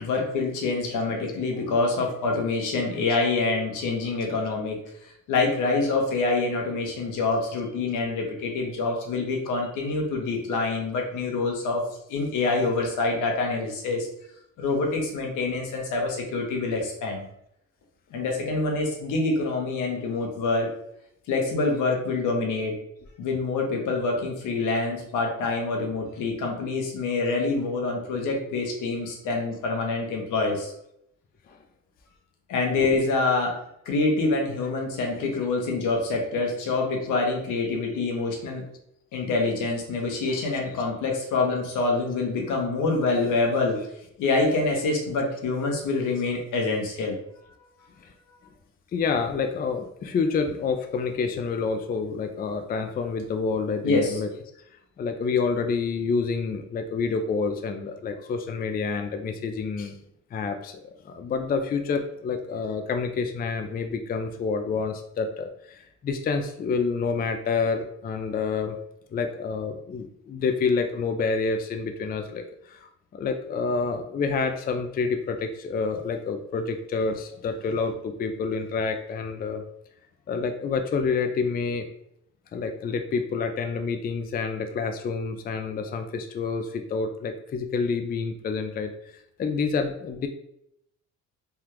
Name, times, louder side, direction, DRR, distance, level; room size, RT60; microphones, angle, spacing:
voice 1, 0.0-14.1 14.6-17.3 18.1-20.7 21.3-22.8 23.2-30.7 32.5-38.6 39.1-43.8 44.2-47.2 53.8-54.2, left 3 dB, 85° left, 1 dB, 0.9 m, -26 dB
voice 2, 32.8-33.1 40.3-40.8 48.0-48.1 48.9-54.3 55.0-60.0 60.3-68.8 69.1-72.8 73.1-79.6 80.3-81.9 82.5-88.9 89.4-90.3, left 5 dB, 30° left, 6 dB, 0.4 m, -28 dB
3.4 x 2.3 x 2.9 m, 0.74 s
cardioid pair, 90°, 30 cm